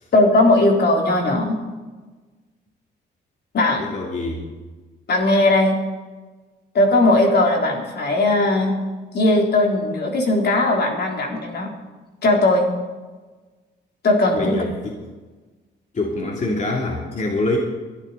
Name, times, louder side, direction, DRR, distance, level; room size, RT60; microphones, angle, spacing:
voice 1, 0.1-1.6 3.5-3.8 5.1-5.8 6.7-8.8 9.1-11.7 12.2-12.6 14.0-14.6, left 2 dB, 55° left, 0 dB, 3.6 m, -18 dB
voice 2, 3.8-4.5 14.3-15.0 15.9-17.6, left 2 dB, 40° left, -1 dB, 3.0 m, -25 dB
21.5 x 12.0 x 4.1 m, 1.3 s
cardioid pair, 90°, 20 cm